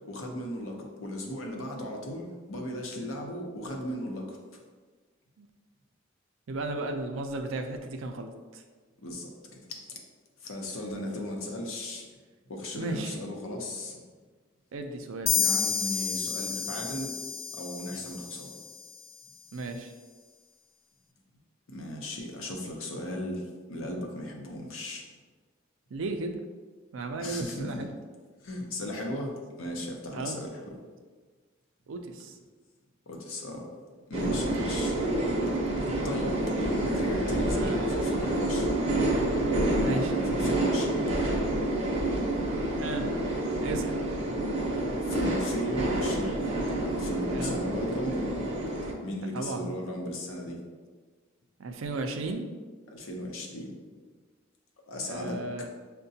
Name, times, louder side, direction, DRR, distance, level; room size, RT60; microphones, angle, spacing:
voice 1, 0.1-4.4 9.0-9.6 9.9-10.0 10.4-12.1 12.5-14.0 15.3-17.1 17.5-18.6 21.7-25.1 27.2-27.9 28.4-30.8 33.1-33.7 34.1-35.0 36.0-38.9 39.7-41.1 45.1-48.4 49.0-50.6 52.9-53.7 54.9-55.7, left 1 dB, 75° left, 0 dB, 0.7 m, -36 dB
voice 2, 6.5-8.6 12.7-13.2 14.7-15.3 19.5-19.9 25.9-26.4 26.9-27.9 30.1-30.5 31.9-32.4 37.5-37.8 39.8-40.1 42.8-43.1 43.6-44.0 47.3-47.6 49.3-49.7 51.6-52.5 55.1-55.7, right 2 dB, 70° right, 5 dB, 0.4 m, -35 dB
sound 1, 15.3-18.8, left 7 dB, 30° left, 0.3 m, -30 dB
sound 2, 34.1-48.9, right 1 dB, 30° right, 0.7 m, -28 dB
6.5 x 2.2 x 2.7 m, 1.4 s
head